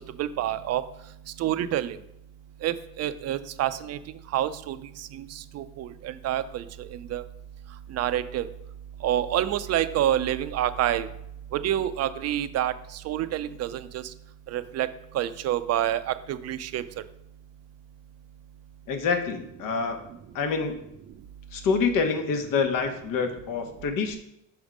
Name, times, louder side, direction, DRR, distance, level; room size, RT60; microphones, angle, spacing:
voice 1, 0.2-0.8 1.4-2.0 2.6-4.0 4.3-4.8 5.5-6.6 7.1-7.2 7.9-8.5 9.0-11.1 11.6-12.7 13.1-14.0 14.5-14.9 15.1-16.8, right 12 dB, 50° right, 13 dB, 0.4 m, -27 dB
voice 2, 18.9-20.0 20.3-20.8 21.5-24.2, left 5 dB, 70° left, 7 dB, 1.0 m, -26 dB
6.0 x 3.5 x 5.0 m, 0.80 s
cardioid pair, 120°, 34 cm